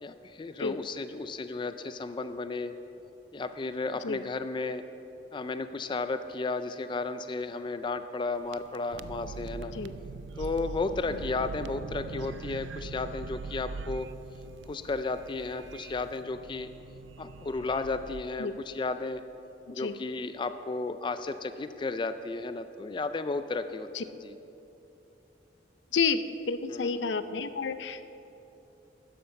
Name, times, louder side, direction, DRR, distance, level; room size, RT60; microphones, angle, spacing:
voice 1, 0.0-2.7 3.3-4.8 5.3-9.7 10.4-14.1 14.7-16.7 17.2-19.2 19.7-23.9 24.2-24.4 26.7-27.4, left 3 dB, 25° left, 10 dB, 0.3 m, -33 dB
sound 1, 8.4-18.2, right 4 dB, 80° right, 0.4 m, -42 dB
voice 2, 25.9-28.1, left 5 dB, 85° left, 12 dB, 0.5 m, -30 dB
12.5 x 9.7 x 5.4 m, 3.0 s
head